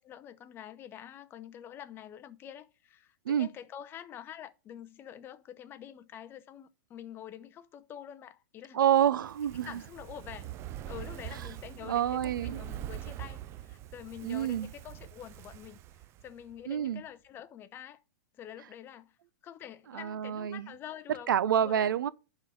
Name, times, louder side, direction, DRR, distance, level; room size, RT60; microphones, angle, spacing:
voice 1, 0.0-8.8 9.5-10.5 10.9-15.8 16.2-18.0 18.3-19.2 19.4-21.3 21.6-21.9, left 10 dB, 20° left, 0.6 m, -47 dB
voice 2, 8.7-9.7 11.8-12.6 14.2-14.7 16.7-17.0 19.9-20.7 21.3-22.1, right 10 dB, 90° right, 0.6 m, -27 dB
Fire, 9.2-16.6 16.9-17.0, right 13 dB, 25° right, 0.4 m, -43 dB
10.5 x 3.8 x 6.3 m
supercardioid pair, 150°, 10 cm